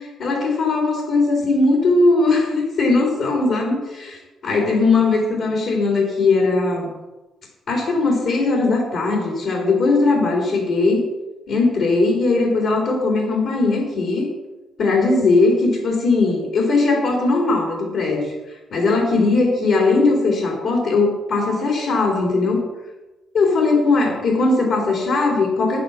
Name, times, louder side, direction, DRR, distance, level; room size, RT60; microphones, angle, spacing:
voice 1, 0.0-4.2 4.4-6.9 7.7-11.0 11.5-14.3 14.8-18.3 18.7-22.6 23.3-25.8, left 3 dB, 65° left, -1 dB, 3.9 m, -19 dB
10.0 x 9.5 x 7.3 m, 1.1 s
cardioid pair, 90°, 0 cm